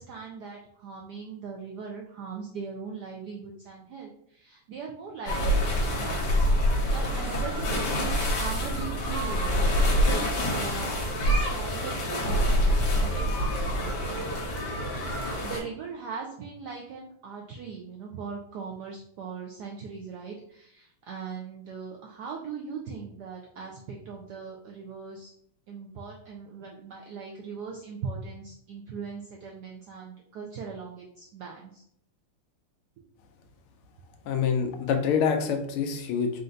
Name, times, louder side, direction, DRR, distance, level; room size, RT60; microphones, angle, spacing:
voice 1, 0.0-6.3 6.7-11.0 11.2-14.5 15.2-25.3 25.7-31.8, right 5 dB, 85° right, 0 dB, 0.9 m, -40 dB
sound 1, 5.3-15.6, equal, 55° left, 1.6 m, -26 dB
voice 2, 34.3-36.3, left 6 dB, 85° left, 6 dB, 1.5 m, -26 dB
4.3 x 2.5 x 3.8 m, 0.69 s
omnidirectional pair, 2.4 m